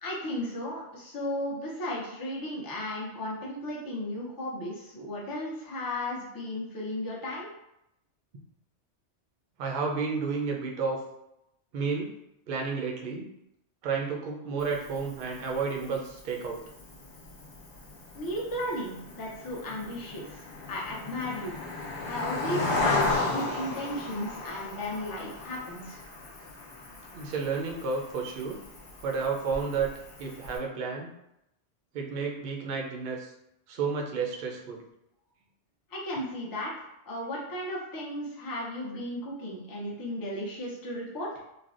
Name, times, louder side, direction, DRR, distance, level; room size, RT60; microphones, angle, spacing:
voice 1, 0.0-7.5 18.1-20.4 20.7-21.6 22.1-26.0 35.9-41.3, left 1 dB, 25° left, -4 dB, 0.5 m, -35 dB
voice 2, 9.6-11.0 11.7-12.1 12.5-13.3 13.8-16.6 27.1-28.6 29.0-29.9 30.2-31.1 31.9-33.3 33.7-34.8, right 5 dB, 60° right, 0 dB, 0.6 m, -31 dB
Cricket, 14.6-30.6, left 3 dB, 55° left, 0.8 m, -36 dB
3.2 x 2.2 x 2.4 m, 0.83 s
omnidirectional pair, 1.3 m